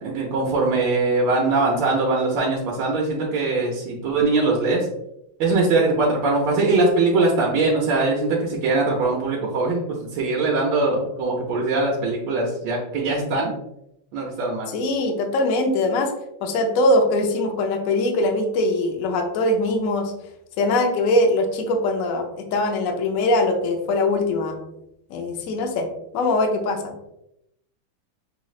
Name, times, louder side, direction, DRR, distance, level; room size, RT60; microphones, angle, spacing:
voice 1, 0.0-4.9 5.4-13.5 14.1-14.7, right 3 dB, 70° right, -2 dB, 1.4 m, -21 dB
voice 2, 14.7-16.1 16.4-20.1 20.6-24.6 25.1-25.9 26.1-26.9, left 2 dB, 70° left, 4 dB, 0.8 m, -22 dB
5.6 x 3.1 x 2.4 m, 0.83 s
omnidirectional pair, 2.2 m